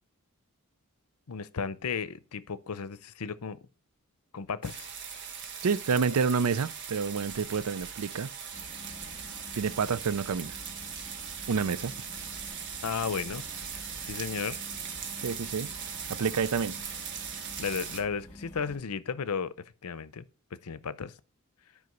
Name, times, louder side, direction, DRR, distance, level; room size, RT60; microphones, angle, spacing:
voice 1, 1.3-3.6 4.3-4.9 12.8-13.4 14.0-14.6 17.6-19.5 19.8-20.3 20.6-21.1, left 6 dB, 90° left, 0.7 m, -34 dB
sound 1, 4.6-18.0, right 7 dB, 55° right, 1.6 m, -40 dB
voice 2, 5.6-8.3 9.6-10.5 11.5-11.9 15.2-15.7 16.1-16.8, right 5 dB, 85° right, 0.5 m, -28 dB
sound 2, 8.5-18.8, left 1 dB, 10° left, 3.5 m, -49 dB
9.6 x 5.2 x 5.2 m
head